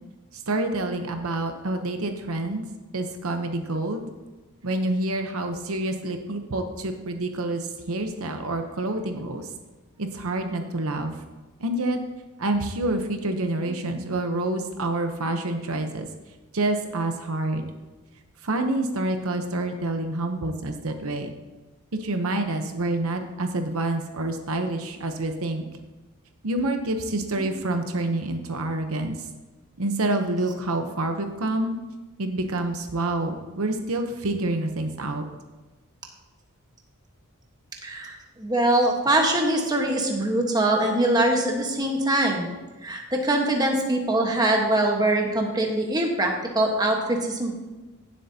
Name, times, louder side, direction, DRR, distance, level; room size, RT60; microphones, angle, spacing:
voice 1, 0.3-2.6 2.9-4.0 4.6-9.5 10.0-11.2 11.6-12.0 12.4-16.1 16.5-17.7 18.4-21.3 22.0-25.6 26.4-29.3 29.8-31.8 32.2-35.2, right 2 dB, 70° right, 6 dB, 0.9 m, -27 dB
voice 2, 37.8-38.1 38.4-42.5 42.8-47.6, right 1 dB, 20° right, 1 dB, 1.3 m, -23 dB
16.5 x 7.6 x 2.8 m, 1.2 s
head